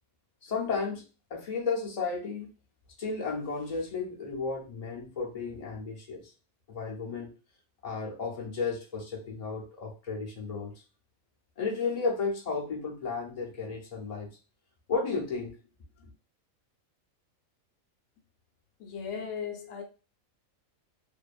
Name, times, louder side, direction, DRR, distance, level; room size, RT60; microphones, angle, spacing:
voice 1, 0.4-1.0 1.3-2.5 3.0-6.3 6.7-7.3 7.8-10.7 11.6-14.3 14.9-15.6, left 4 dB, 40° left, 0.5 m, -33 dB
voice 2, 18.8-19.8, left 6 dB, 65° left, 0.9 m, -37 dB
2.6 x 2.3 x 2.3 m
omnidirectional pair, 1.5 m